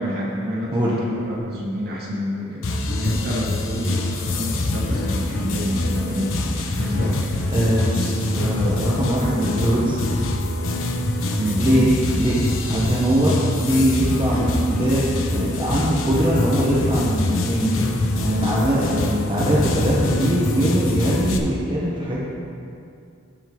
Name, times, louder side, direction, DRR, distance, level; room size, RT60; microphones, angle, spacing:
voice 1, 0.0-2.6 3.0-6.4 6.8-7.2 11.4-11.6, equal, 55° right, -5 dB, 2.1 m, -28 dB
sound 1, 2.6-21.4, left 1 dB, 70° left, 0.8 m, -24 dB
voice 2, 6.7-7.2 7.5-10.0 11.6-17.8 18.2-22.2, equal, 25° right, -7 dB, 1.1 m, -21 dB
15.0 x 5.7 x 3.1 m, 2.5 s
head